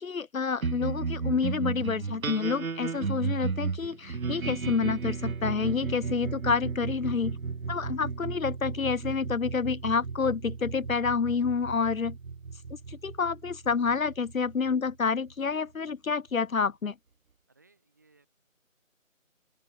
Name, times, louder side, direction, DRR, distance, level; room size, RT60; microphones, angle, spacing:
voice 1, 0.0-7.4 7.7-12.2 12.9-17.0, left 5 dB, 75° left, 0.8 m, -28 dB
sound 1, 0.6-15.3, right 5 dB, 80° right, 1.0 m, -34 dB
voice 2, 17.5-18.3, right 3 dB, 15° right, 4.0 m, -64 dB
open air
figure-of-eight pair, 175°, 41 cm